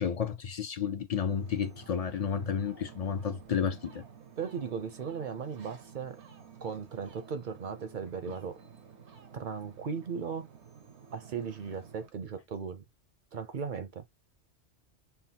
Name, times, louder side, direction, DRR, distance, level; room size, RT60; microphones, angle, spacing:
voice 1, 0.0-4.0, left 7 dB, 55° left, 0.4 m, -31 dB
Ocean, 1.3-12.1, right 6 dB, 80° right, 1.0 m, -52 dB
voice 2, 4.4-6.2 6.6-8.6 9.3-10.5 11.1-12.8 13.3-14.0, right 6 dB, 55° right, 0.6 m, -37 dB
5.6 x 2.0 x 2.8 m
omnidirectional pair, 1.1 m